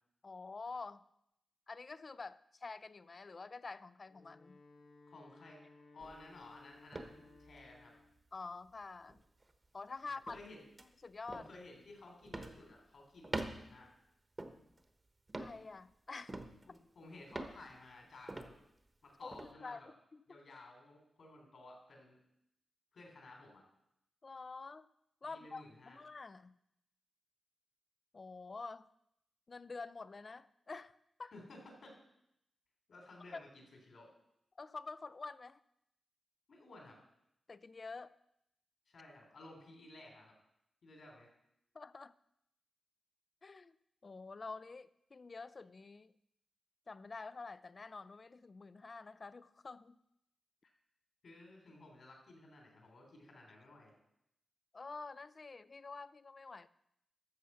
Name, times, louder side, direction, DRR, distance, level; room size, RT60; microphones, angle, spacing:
voice 1, 0.2-1.0 1.7-4.6 8.3-9.2 9.7-10.4 11.0-11.5 15.4-16.4 16.7-16.8 19.2-20.4 24.2-24.9 25.2-26.6 28.1-28.8 29.5-31.3 33.3-33.4 34.6-35.6 37.5-38.1 41.7-42.1 43.4-43.7 44.0-46.1 46.9-50.0 54.7-56.7, left 4 dB, 40° left, 16 dB, 0.4 m, -48 dB
Wind instrument woodwind instrument, 4.1-8.2, left 3 dB, 90° left, 2.1 m, -61 dB
voice 2, 5.1-5.6 5.9-7.9 10.0-10.6 11.3-13.9 16.7-18.6 19.0-19.9 20.3-22.2 22.9-23.6 25.3-26.0 31.3-31.9 32.9-34.1 36.5-37.0 38.9-40.3 40.8-41.3 51.2-54.0, left 2 dB, 70° left, 1 dB, 3.6 m, -55 dB
sound 1, 6.0-6.3 6.9-7.8 8.2-8.3 9.1-9.5 10.3-10.5 10.8-10.9 11.3-11.5 12.2-12.7 13.2-13.8 14.4-14.8 15.3-15.6 16.3-16.8 17.3-17.6 18.3-18.6 19.3-19.5, right 2 dB, 30° right, 1.0 m, -44 dB
13.0 x 7.0 x 5.6 m, 0.79 s
wide cardioid pair, 110°, 0 cm